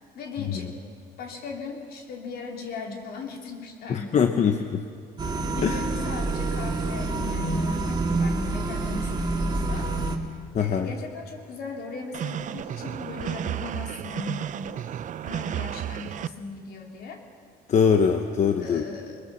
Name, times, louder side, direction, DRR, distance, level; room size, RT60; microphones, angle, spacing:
voice 1, 0.1-0.8 1.2-4.2 5.4-9.9 10.6-14.5 15.2-17.2 18.6-19.2, left 4 dB, 65° left, 1 dB, 3.6 m, -38 dB
voice 2, 3.9-4.8 5.6-5.8 10.5-10.9 17.7-18.8, left 6 dB, 45° left, 6 dB, 1.1 m, -22 dB
sound 1, 5.2-10.2, right 2 dB, 25° right, 2.4 m, -27 dB
sound 2, 12.1-16.3, right 10 dB, 50° right, 0.7 m, -32 dB
22.5 x 21.5 x 7.3 m, 2.2 s
cardioid pair, 110°, 17 cm